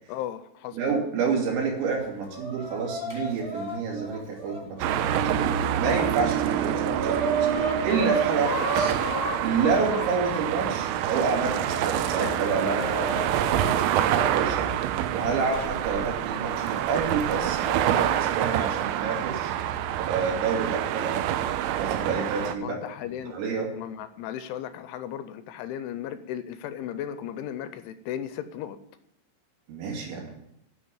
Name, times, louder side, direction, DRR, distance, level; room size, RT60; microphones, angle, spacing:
voice 1, 0.1-0.8 22.6-23.3 23.8-28.8, left 10 dB, 80° left, 11 dB, 2.8 m, -35 dB
voice 2, 0.7-5.2 5.8-8.9 9.4-14.7 15.1-19.5 20.0-21.3 21.8-22.8 23.3-23.7 29.7-30.4, right 5 dB, 65° right, -1 dB, 4.6 m, -29 dB
Chicken rooster, 2.0-5.4 6.0-6.1 6.4-10.4 11.0-14.3 15.5-15.6 16.6-16.7 17.7-18.0, right 2 dB, 20° left, 2.7 m, -32 dB
sound 1, 4.8-22.6, right 11 dB, 85° right, 3.3 m, -27 dB
10.0 x 6.9 x 8.9 m, 0.78 s
omnidirectional pair, 5.8 m